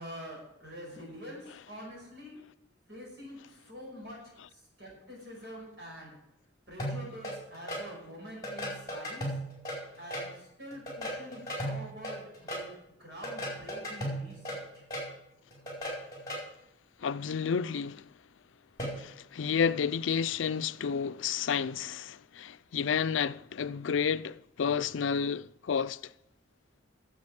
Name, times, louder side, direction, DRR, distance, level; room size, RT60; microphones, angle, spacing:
voice 1, 0.0-2.4 2.9-4.2 4.5-6.1 6.7-9.2 10.0-12.7 13.0-14.8, equal, 60° right, 5.5 m, -46 dB
sound 1, 6.8-7.8 8.4-10.3 10.7-12.6 13.2-15.1 15.5-16.4 18.8-19.0, equal, 20° left, 4.7 m, -36 dB
voice 2, 17.0-18.1 19.0-26.0, left 6 dB, 80° left, 0.4 m, -31 dB
9.7 x 7.8 x 8.8 m
head